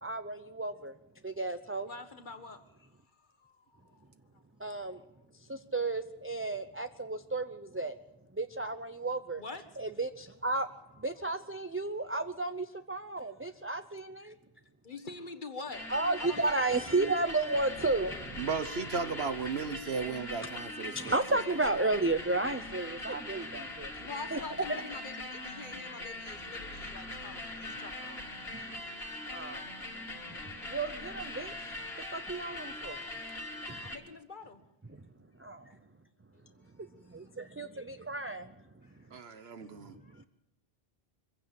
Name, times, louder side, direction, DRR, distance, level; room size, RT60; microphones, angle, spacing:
voice 1, 0.0-0.9 1.2-1.9 4.6-5.0 5.5-8.0 8.3-9.4 9.8-10.7 11.0-14.4 15.9-18.4 20.9-23.9 24.3-24.4 29.3-29.7 30.7-31.7 32.1-33.0 33.7-33.8 35.4-35.8 37.1-38.5 39.9-40.0, right 2 dB, 15° right, 0.6 m, -33 dB
voice 2, 1.8-2.6 3.4-4.0 9.4-9.6 14.8-15.9 16.2-16.6 23.9-28.2 28.8-29.2 32.8-33.1 33.8-34.6 37.2-37.3 38.8-38.9 40.0-40.2, left 3 dB, 50° left, 1.6 m, -45 dB
sound 1, 15.7-34.0, left 2 dB, 75° left, 2.5 m, -42 dB
voice 3, 18.4-21.4 39.1-40.0, right 5 dB, 80° right, 1.4 m, -35 dB
23.0 x 15.5 x 7.6 m
omnidirectional pair, 1.0 m